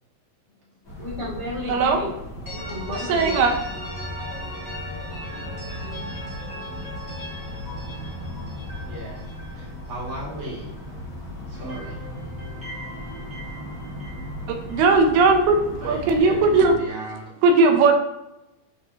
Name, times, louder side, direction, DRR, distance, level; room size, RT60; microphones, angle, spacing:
sound 1, 0.8-16.7, equal, 25° left, 2.3 m, -37 dB
voice 1, 1.0-2.2 2.5-3.5, left 1 dB, 70° left, -8 dB, 0.4 m, -32 dB
voice 2, 1.7-2.0 2.9-3.5 14.7-16.8 17.4-17.9, right 3 dB, 80° right, 4 dB, 2.7 m, -18 dB
sound 2, 2.5-11.2 11.5-15.6, left 1 dB, 5° right, 2.0 m, -38 dB
voice 3, 8.9-9.2 9.5-10.7 11.5-12.0 15.8-17.2, right 2 dB, 35° right, -6 dB, 2.4 m, -36 dB
11.5 x 4.7 x 2.9 m, 0.91 s
omnidirectional pair, 4.6 m